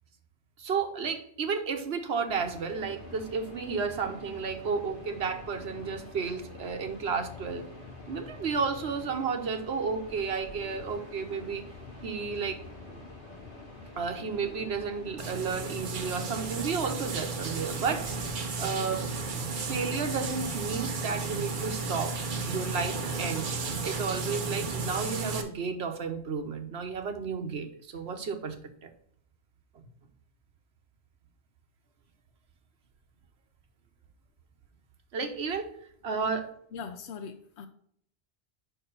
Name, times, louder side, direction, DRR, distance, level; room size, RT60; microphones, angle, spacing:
voice 1, 0.6-7.7 8.1-11.6 12.0-12.6 12.9-13.0 14.0-18.1 18.6-19.1 19.5-22.2 22.5-23.5 23.8-28.9 35.1-35.7 36.0-36.5, right 5 dB, 80° right, 1.2 m, -32 dB
sound 1, 2.3-18.4, left 2 dB, 55° left, 1.9 m, -46 dB
sound 2, 15.2-25.4, right 4 dB, 50° right, 0.9 m, -33 dB
voice 2, 36.7-37.7, left 6 dB, 90° left, 0.9 m, -41 dB
5.4 x 4.6 x 5.4 m
omnidirectional pair, 1.1 m